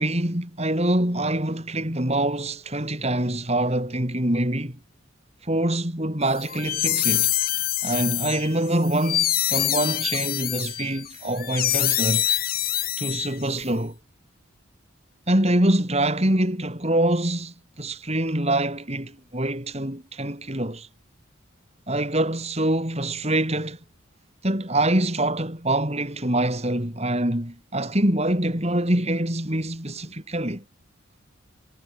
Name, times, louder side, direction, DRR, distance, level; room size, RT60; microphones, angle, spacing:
voice 1, 0.0-4.8 5.4-7.3 7.8-12.2 13.0-14.0 15.3-20.9 21.9-23.8 24.4-30.6, right 1 dB, 30° right, 4.6 m, -25 dB
sound 1, 6.4-13.6, left 13 dB, 45° left, 5.1 m, -25 dB
head